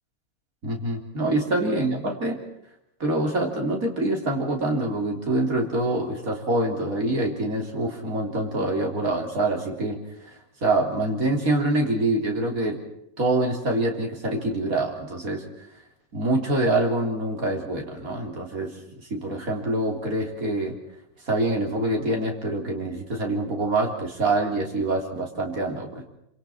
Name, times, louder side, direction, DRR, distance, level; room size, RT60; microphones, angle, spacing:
voice 1, 0.6-2.4 3.0-10.0 10.6-12.8 13.2-15.4 16.1-18.7 19.0-20.8 21.3-26.0, right 2 dB, 65° right, 1 dB, 4.0 m, -25 dB
27.0 x 26.0 x 4.5 m, 0.78 s
omnidirectional pair, 1.6 m